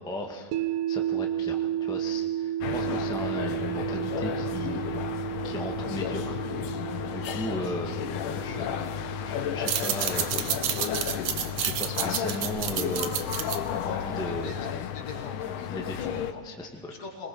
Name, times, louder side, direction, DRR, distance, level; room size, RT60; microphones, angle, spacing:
voice 1, 0.0-4.8 5.1-6.4 7.0-8.1 8.3-8.8 9.2-10.3 11.5-13.5 13.8-14.5 15.7-17.0, left 1 dB, ahead, 1 dB, 1.1 m, -37 dB
sound 1, 0.5-12.6, right 11 dB, 85° right, 2.6 m, -34 dB
sound 2, 2.6-16.3, left 9 dB, 90° left, 2.5 m, -33 dB
voice 2, 7.4-7.7 8.4-8.7 14.1-14.5 14.9-16.4 16.7-17.3, left 4 dB, 60° left, 0 dB, 3.8 m, -42 dB
sound 3, 9.5-14.7, right 10 dB, 65° right, 2.0 m, -31 dB
26.0 x 20.0 x 5.6 m, 1.4 s
omnidirectional pair, 3.6 m